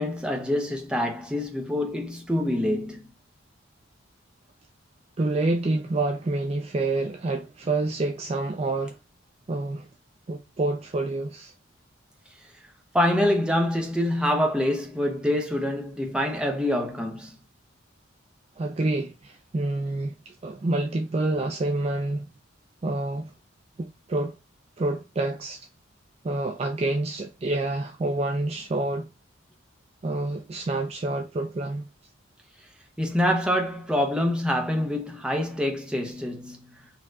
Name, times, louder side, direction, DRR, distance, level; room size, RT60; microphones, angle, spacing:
voice 1, 0.0-3.0 12.9-17.4 33.0-36.7, left 1 dB, 5° right, 0.7 m, -25 dB
voice 2, 5.2-9.0 9.5-9.9 10.3-11.5 18.6-22.3 22.8-23.3 23.8-24.4 24.8-25.7 26.2-29.1 30.0-31.9, right 2 dB, 30° right, 0.4 m, -28 dB
4.3 x 2.9 x 2.4 m
head